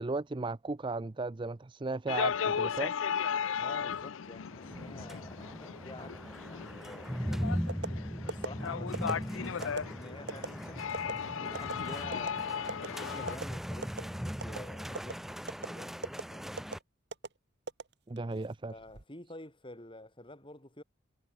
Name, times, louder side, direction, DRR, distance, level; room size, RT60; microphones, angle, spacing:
voice 1, 0.0-2.9 18.1-18.7, right 3 dB, 25° right, 0.5 m, -35 dB
sound 1, 2.1-13.4, left 7 dB, 70° left, 0.5 m, -36 dB
voice 2, 3.6-7.3 7.9-10.8 11.4-16.5 18.7-20.8, left 2 dB, 25° left, 4.5 m, -49 dB
sound 2, 4.5-16.8, equal, ahead, 1.8 m, -39 dB
sound 3, 7.7-7.9 8.3-8.5 8.9-9.2 9.6-9.8 10.3-10.5 10.9-11.1 11.5-11.7 12.1-12.3 12.7-12.9 13.3-13.4 13.8-14.1 14.4-14.6 14.9-15.1 15.5-15.7 16.0-16.2 16.6-16.8 17.1-17.3 17.7-18.3 18.7-19.0, right 3 dB, 55° right, 1.6 m, -37 dB
head